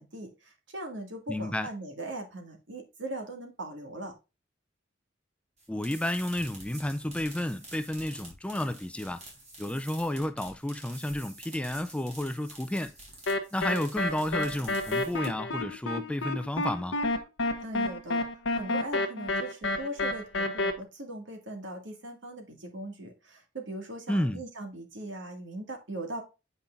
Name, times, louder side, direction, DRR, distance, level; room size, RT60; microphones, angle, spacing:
voice 1, 0.0-4.1 17.6-18.3 18.5-26.2, right 1 dB, 65° right, 2.1 m, -39 dB
voice 2, 1.3-1.7 5.7-9.2 9.6-12.9 13.5-17.0 24.1-24.4, left 1 dB, 5° left, 0.4 m, -31 dB
sound 1, 5.6-15.5, right 1 dB, 35° right, 3.8 m, -48 dB
sound 2, 13.3-20.7, left 2 dB, 70° left, 1.0 m, -29 dB
8.4 x 5.7 x 2.5 m
head